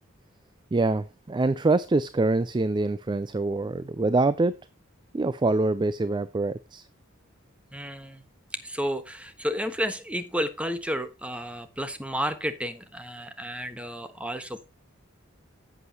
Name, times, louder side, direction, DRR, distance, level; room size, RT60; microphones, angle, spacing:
voice 1, 0.7-4.6 5.1-6.8, right 2 dB, 20° right, 0.4 m, -25 dB
voice 2, 7.7-8.2 8.6-14.7, equal, 5° right, 1.3 m, -32 dB
11.0 x 8.2 x 2.9 m
head